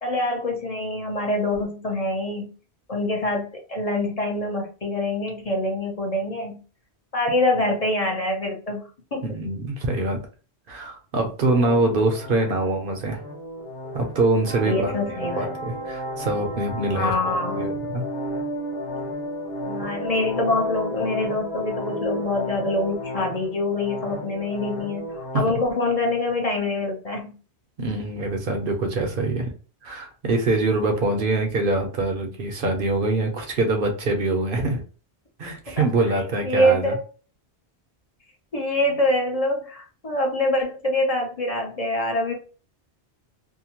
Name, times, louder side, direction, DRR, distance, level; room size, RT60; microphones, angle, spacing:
voice 1, 0.0-2.5 2.9-6.6 7.1-8.8 9.1-9.3 14.6-15.5 16.9-17.7 19.7-27.3 35.7-35.9 36.2-37.0 38.5-42.3, left 1 dB, 40° left, 0 dB, 0.7 m, -25 dB
voice 2, 9.2-10.2 10.7-13.2 13.9-14.9 15.2-18.0 27.8-29.5 29.8-34.8 35.4-37.0, right 2 dB, 55° right, 3 dB, 0.8 m, -24 dB
sound 1, 11.4-25.4, left 1 dB, 70° left, 1.0 m, -33 dB
2.7 x 2.1 x 2.8 m, 0.36 s
omnidirectional pair, 1.1 m